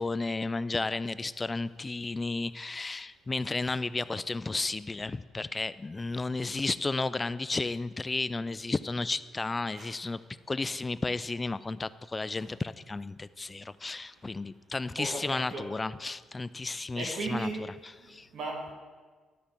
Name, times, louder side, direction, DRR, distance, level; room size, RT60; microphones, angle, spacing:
voice 1, 0.0-10.2 10.5-17.5 18.1-18.3, left 3 dB, 25° left, 16 dB, 0.3 m, -33 dB
voice 2, 15.0-15.7 17.0-17.7 18.3-18.7, right 2 dB, 65° right, 0 dB, 2.2 m, -35 dB
11.0 x 4.3 x 6.8 m, 1.4 s
cardioid pair, 90°, 0 cm